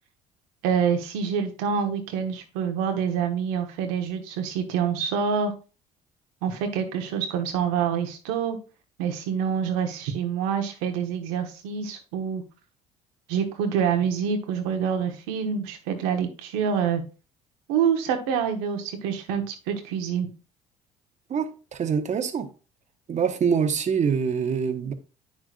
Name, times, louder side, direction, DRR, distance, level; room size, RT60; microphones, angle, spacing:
voice 1, 0.6-5.5 6.4-8.6 9.0-12.4 13.3-17.0 17.7-20.3, right 7 dB, 75° right, 1.3 m, -26 dB
voice 2, 21.3-22.5 23.1-24.9, right 6 dB, 45° right, 1.2 m, -25 dB
8.6 x 6.4 x 2.5 m
hypercardioid pair, 65°, 17 cm